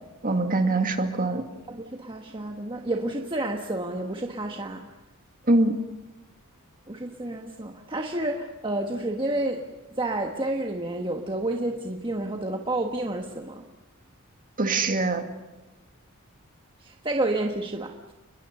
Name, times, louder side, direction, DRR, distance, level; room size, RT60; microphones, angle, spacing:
voice 1, 0.2-1.5 5.5-5.8 14.6-15.3, right 2 dB, 40° right, 6 dB, 2.3 m, -23 dB
voice 2, 1.7-4.9 6.9-13.6 16.8-18.1, right 1 dB, 25° right, 2 dB, 1.4 m, -30 dB
29.5 x 21.5 x 6.9 m, 1.1 s
head